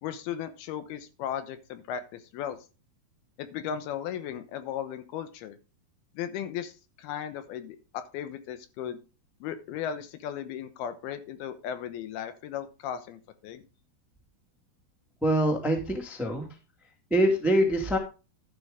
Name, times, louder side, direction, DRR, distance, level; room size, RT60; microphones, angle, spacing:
voice 1, 0.0-2.7 3.4-5.6 6.1-9.0 9.4-13.6, left 9 dB, 75° left, 10 dB, 2.9 m, -36 dB
voice 2, 15.2-16.5 17.1-18.0, right 1 dB, ahead, 3 dB, 0.5 m, -24 dB
12.0 x 7.6 x 3.6 m, 0.31 s
omnidirectional pair, 4.6 m